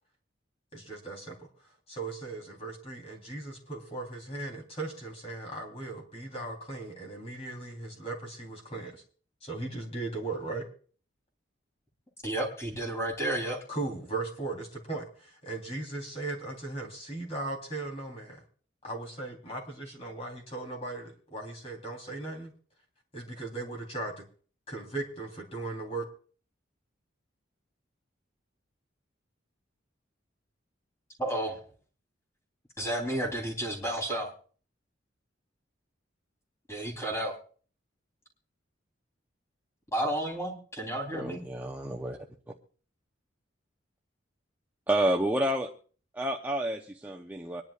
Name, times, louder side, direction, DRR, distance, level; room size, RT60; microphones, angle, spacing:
voice 1, 0.7-1.3 1.9-9.0 9.4-10.6 13.7-18.4 18.8-22.5 23.1-24.1 24.7-26.0, right 2 dB, 30° left, 0 dB, 3.4 m, -37 dB
voice 2, 12.2-13.6 31.2-31.6 32.8-34.3 36.7-37.4 39.9-41.4, right 1 dB, 15° left, 1 dB, 3.4 m, -31 dB
voice 3, 41.1-42.2 44.9-45.7 46.1-47.6, right 1 dB, 10° right, 0 dB, 0.7 m, -29 dB
25.5 x 11.0 x 2.4 m, 0.42 s
head